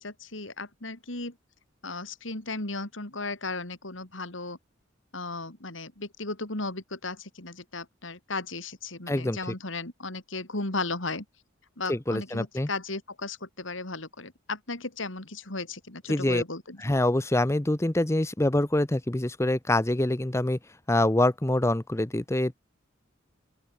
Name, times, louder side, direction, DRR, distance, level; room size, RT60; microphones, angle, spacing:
voice 1, 0.0-1.3 1.8-4.6 5.1-11.2 11.8-16.8, left 3 dB, 75° left, 4.5 m, -35 dB
voice 2, 9.1-9.5 11.9-12.7 16.1-16.4 16.8-20.6 20.9-22.5, left 1 dB, 15° left, 0.8 m, -25 dB
open air
head